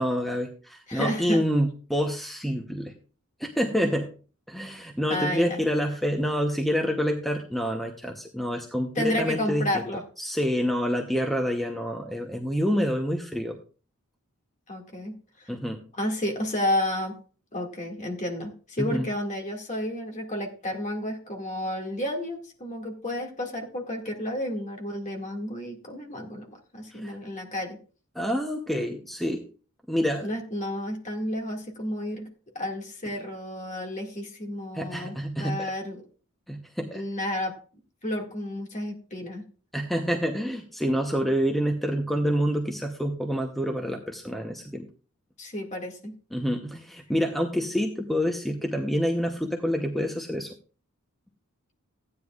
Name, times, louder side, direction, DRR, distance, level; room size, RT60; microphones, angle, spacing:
voice 1, 0.0-2.9 3.4-4.1 4.5-9.8 10.2-13.6 15.5-15.8 18.8-19.1 26.9-27.2 28.1-29.4 29.9-30.3 34.7-35.7 36.5-37.0 39.7-44.9 46.3-50.5, equal, ahead, 3 dB, 0.8 m, -27 dB
voice 2, 0.9-1.4 5.1-5.6 9.0-10.0 14.7-15.5 15.9-17.1 17.5-27.8 30.2-32.3 32.5-36.0 36.9-37.5 38.0-39.4 45.4-46.1, left 1 dB, 35° left, 1 dB, 2.1 m, -31 dB
15.0 x 9.6 x 2.4 m, 0.38 s
head